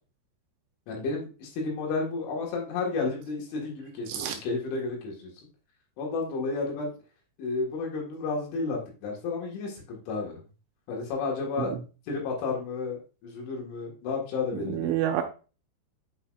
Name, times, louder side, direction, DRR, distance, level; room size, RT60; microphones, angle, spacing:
voice 1, 0.9-5.5 6.0-6.9 7.4-10.4 10.9-11.7 12.1-14.9, left 4 dB, 70° left, -1 dB, 4.0 m, -32 dB
voice 2, 14.7-15.2, right 11 dB, 80° right, 5 dB, 2.8 m, -28 dB
8.2 x 5.6 x 2.5 m, 0.35 s
omnidirectional pair, 5.8 m